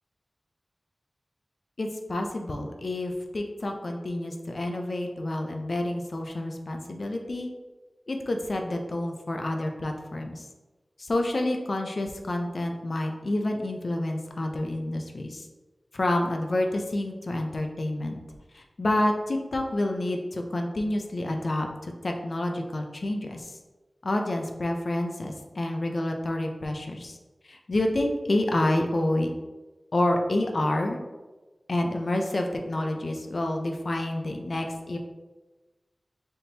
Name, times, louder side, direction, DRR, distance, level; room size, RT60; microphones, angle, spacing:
voice 1, 1.8-7.5 8.1-10.5 11.0-15.5 15.9-18.2 18.5-23.6 24.0-27.2 27.4-29.3 29.9-31.0 31.7-35.0, left 1 dB, 60° left, 3 dB, 0.5 m, -28 dB
4.2 x 3.5 x 2.8 m, 1.2 s
wide cardioid pair, 80°, 0 cm